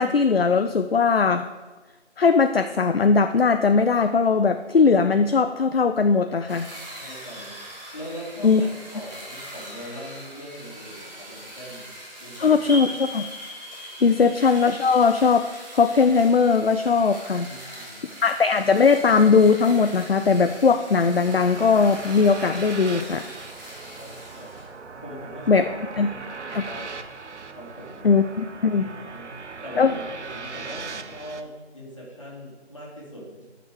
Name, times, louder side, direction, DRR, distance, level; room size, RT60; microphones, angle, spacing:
voice 1, 0.0-1.5 2.2-6.7 8.4-8.6 12.3-13.3 14.0-15.5 15.7-17.5 18.2-23.3 25.5-25.7 26.0-26.1 26.5-26.6 28.0-28.9 29.8-29.9, left 5 dB, 60° left, 8 dB, 0.5 m, -19 dB
sound 1, 6.5-24.7, right 1 dB, 55° right, 3.3 m, -42 dB
voice 2, 6.7-7.6 7.9-11.9 12.2-12.8 14.0-14.3 17.5-18.2 23.9-24.5 25.0-27.0 27.6-28.1 28.8-29.3 29.6-33.3, equal, 25° left, -5 dB, 2.2 m, -41 dB
sound 2, 12.7-17.1, left 1 dB, 20° right, 2.3 m, -39 dB
sound 3, 21.3-31.4, right 4 dB, 85° right, 0.9 m, -39 dB
11.0 x 6.0 x 4.7 m, 1.2 s
figure-of-eight pair, 175°, 34 cm